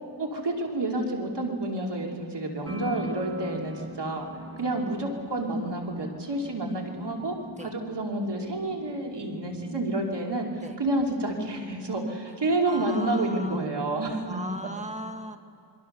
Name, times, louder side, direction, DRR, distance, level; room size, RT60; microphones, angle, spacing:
voice 1, 0.2-4.3 4.6-7.4 7.6-14.4, right 2 dB, 70° right, 1 dB, 2.9 m, -29 dB
sound 1, 2.7-12.2, equal, 30° right, 1.3 m, -43 dB
voice 2, 12.6-13.7 14.3-15.4, equal, 15° right, 6 dB, 1.4 m, -38 dB
27.0 x 22.5 x 6.7 m, 2.3 s
wide cardioid pair, 80°, 42 cm